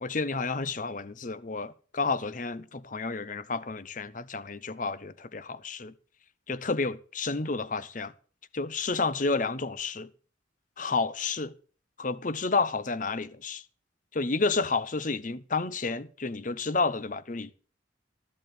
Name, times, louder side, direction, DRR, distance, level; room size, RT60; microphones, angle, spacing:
voice 1, 0.0-5.9 6.5-8.1 8.5-10.1 10.8-11.5 12.0-13.6 14.1-17.5, left 3 dB, 45° left, 0.8 m, -30 dB
13.5 x 7.5 x 6.2 m
head